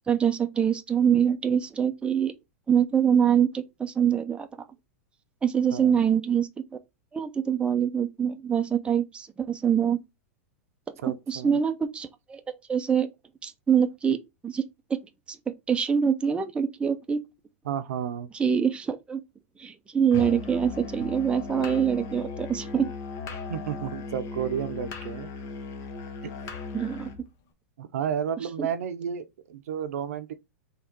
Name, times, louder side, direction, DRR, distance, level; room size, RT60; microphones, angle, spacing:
voice 1, 0.1-2.3 2.7-4.5 5.4-6.5 7.1-10.0 11.3-12.4 12.7-13.1 13.4-14.2 14.4-14.6 14.9-15.0 15.7-17.2 18.4-19.2 19.6-22.9 26.7-27.1 28.6-28.7, right 8 dB, 15° right, 0.6 m, -24 dB
voice 2, 11.0-11.6 17.6-18.3 23.5-25.3 26.2-26.3 27.8-30.3, right 8 dB, 75° right, 0.7 m, -32 dB
Musical instrument, 20.1-27.2, left 4 dB, 40° left, 1.2 m, -37 dB
3.7 x 3.1 x 4.5 m
hypercardioid pair, 120°, 8 cm